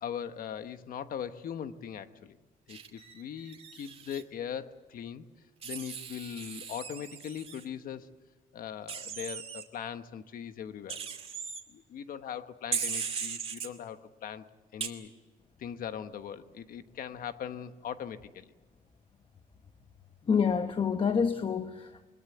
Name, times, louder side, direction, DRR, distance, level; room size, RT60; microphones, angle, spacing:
voice 1, 0.0-2.4 2.7-5.2 5.6-8.1 8.5-11.0 11.7-14.4 14.7-15.1 15.6-18.5, left 8 dB, 75° left, 1.2 m, -40 dB
Wild animals, 2.7-4.2 5.6-7.6 8.9-9.6 10.9-11.6 12.7-13.7 14.8-14.9, right 6 dB, 40° right, 2.4 m, -38 dB
voice 2, 20.3-22.1, left 6 dB, 35° left, 0.9 m, -27 dB
22.0 x 21.5 x 8.0 m
cardioid pair, 120°, 15 cm